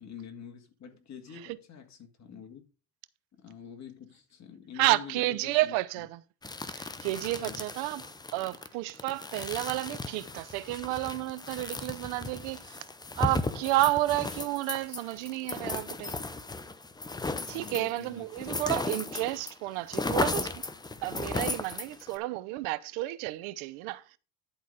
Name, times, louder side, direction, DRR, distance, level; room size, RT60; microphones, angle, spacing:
voice 1, 0.0-2.6 3.3-6.1 7.4-7.7 17.4-18.6, left 8 dB, 35° left, 1.9 m, -47 dB
voice 2, 4.8-6.2 6.7-8.0 8.3-12.8 13.2-16.1 17.5-20.5 21.0-24.0, right 18 dB, 75° right, 0.8 m, -31 dB
sound 1, 6.4-19.5 19.8-22.2, left 3 dB, 10° left, 0.6 m, -36 dB
11.0 x 4.0 x 5.4 m
supercardioid pair, 110°, 47 cm